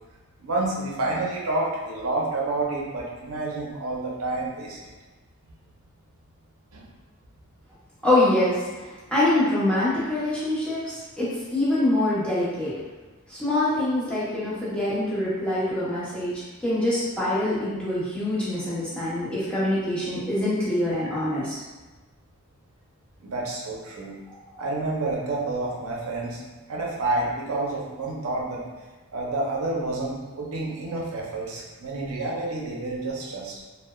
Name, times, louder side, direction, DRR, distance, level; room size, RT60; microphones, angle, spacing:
voice 1, 0.4-4.8 6.7-6.8 23.2-24.1 24.6-26.4 26.7-28.6 29.1-33.5, right 2 dB, 80° right, -3 dB, 0.6 m, -29 dB
voice 2, 8.0-8.6 9.1-12.7 13.3-21.6, left 1 dB, 5° left, -10 dB, 0.8 m, -24 dB
3.2 x 2.1 x 2.2 m, 1.3 s
head